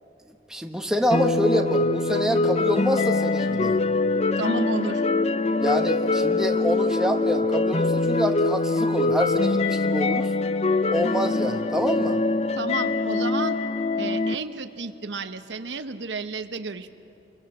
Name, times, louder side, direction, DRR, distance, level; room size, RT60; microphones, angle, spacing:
voice 1, 0.5-3.8 5.6-10.3 10.9-12.2, equal, 5° right, 3 dB, 1.2 m, -26 dB
sound 1, 1.1-14.3, left 3 dB, 35° left, 0.5 m, -23 dB
voice 2, 4.4-5.1 12.6-13.6 14.0-16.9, right 3 dB, 90° right, 9 dB, 1.0 m, -31 dB
29.0 x 22.5 x 7.6 m, 2.7 s
head